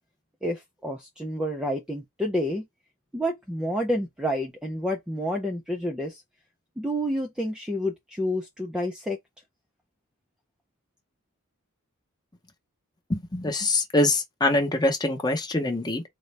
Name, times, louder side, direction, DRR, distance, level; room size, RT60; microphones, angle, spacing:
voice 1, 0.4-2.7 3.1-6.2 6.8-9.2, equal, 5° right, 0.4 m, -29 dB
voice 2, 13.1-16.0, left 2 dB, 20° left, 0.8 m, -24 dB
3.8 x 2.1 x 3.2 m
head